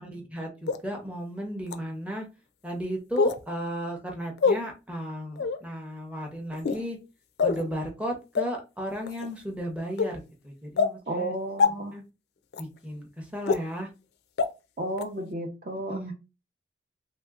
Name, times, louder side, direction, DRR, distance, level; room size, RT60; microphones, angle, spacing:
voice 1, 0.0-2.3 2.6-7.0 7.4-11.3 11.7-12.0 12.6-13.9 15.9-16.1, equal, 5° right, 0 dB, 0.6 m, -35 dB
sound 1, 0.7-0.8 1.7-1.8 3.2-3.4 4.4-4.6 5.4-5.6 6.5-6.8 7.4-7.6 8.3-8.4 9.1-9.3 10.0-10.1 10.8-10.9 11.6-11.7 12.5-12.6 13.5-13.6 14.4-14.5 15.0-15.1, left 5 dB, 65° left, 0.3 m, -23 dB
voice 2, 11.1-11.9 14.8-16.0, right 1 dB, 45° right, 3 dB, 0.6 m, -32 dB
3.1 x 2.7 x 2.3 m, 0.28 s
head